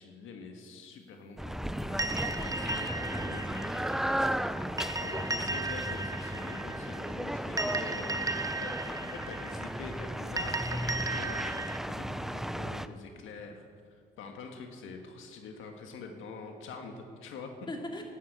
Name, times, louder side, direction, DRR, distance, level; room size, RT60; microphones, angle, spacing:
voice 1, 0.0-2.3 3.3-3.7 5.0-8.3 8.6-13.6 14.2-17.5, left 4 dB, 80° left, 3 dB, 1.7 m, -45 dB
sound 1, 1.4-12.9, equal, ahead, 0.6 m, -35 dB
sound 2, 2.0-11.8, right 3 dB, 15° right, 1.1 m, -36 dB
voice 2, 2.2-3.7 17.7-18.0, left 1 dB, 25° left, 1 dB, 2.9 m, -42 dB
11.5 x 11.0 x 8.7 m, 2.1 s
cardioid pair, 90°, 20 cm